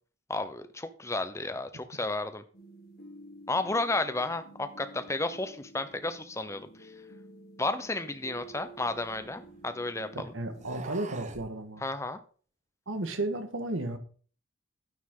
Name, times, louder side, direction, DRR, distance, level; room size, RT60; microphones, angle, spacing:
voice 1, 0.3-2.4 3.5-6.9 7.6-10.3 11.8-12.2, left 2 dB, 15° left, 10 dB, 0.8 m, -32 dB
sound 1, 2.5-10.8, right 1 dB, 50° left, 2.3 m, -51 dB
sound 2, 8.3-9.7 10.5-11.5, right 3 dB, 35° right, 0.9 m, -46 dB
voice 2, 10.1-11.8 12.9-14.0, right 2 dB, 80° right, 7 dB, 1.6 m, -33 dB
9.4 x 9.3 x 3.9 m, 0.42 s
head